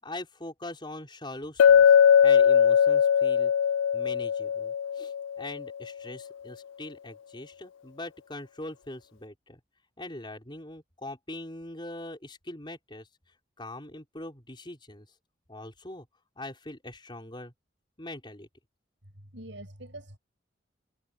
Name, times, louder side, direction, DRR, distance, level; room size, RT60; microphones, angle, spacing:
voice 1, 0.0-1.8 2.2-3.5 3.9-9.6 10.0-13.1 13.6-15.1 15.5-16.1 16.3-17.5 18.0-18.5, left 1 dB, 25° left, 5.2 m, -42 dB
Chink clink, 1.6-5.6, left 8 dB, 80° left, 0.3 m, -20 dB
voice 2, 19.2-20.2, right 1 dB, 70° right, 7.8 m, -44 dB
head